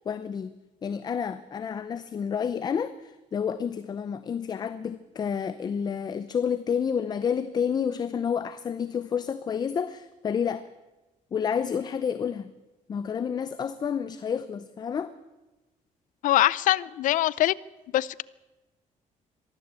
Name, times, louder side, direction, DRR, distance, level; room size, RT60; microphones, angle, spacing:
voice 1, 0.1-0.5 0.8-10.7 11.3-12.5 12.9-15.1, left 7 dB, 30° left, 0.7 m, -29 dB
voice 2, 16.2-17.5 17.9-18.2, left 14 dB, 75° left, 0.6 m, -23 dB
23.0 x 14.5 x 8.2 m
cardioid pair, 175°, 14 cm